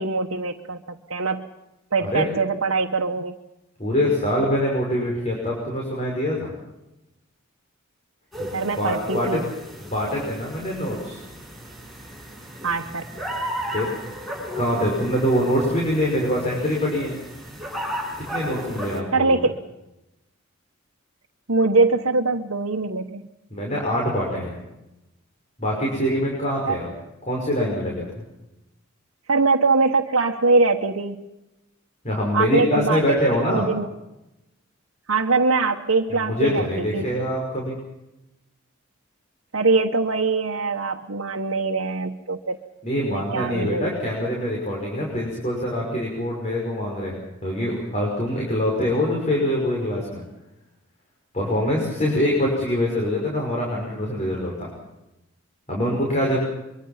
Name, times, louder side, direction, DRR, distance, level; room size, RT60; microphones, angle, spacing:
voice 1, 0.0-1.5 1.9-3.4 8.5-9.4 12.6-13.1 19.1-19.5 21.5-23.2 26.7-26.8 29.3-31.2 32.3-33.9 35.1-37.1 39.5-42.6 43.1-43.9, right 3 dB, 85° right, 0 dB, 1.3 m, -22 dB
voice 2, 3.8-6.5 8.4-9.4 9.8-11.2 13.7-13.9 14.5-17.2 18.2-19.4 23.5-24.6 25.6-26.9 27.3-28.2 32.0-33.6 36.1-37.8 42.8-50.2 51.3-54.7 55.7-56.4, equal, 35° left, -2 dB, 5.8 m, -24 dB
sound 1, 8.3-19.0, equal, ahead, 5.8 m, -34 dB
24.0 x 24.0 x 5.9 m, 0.94 s
head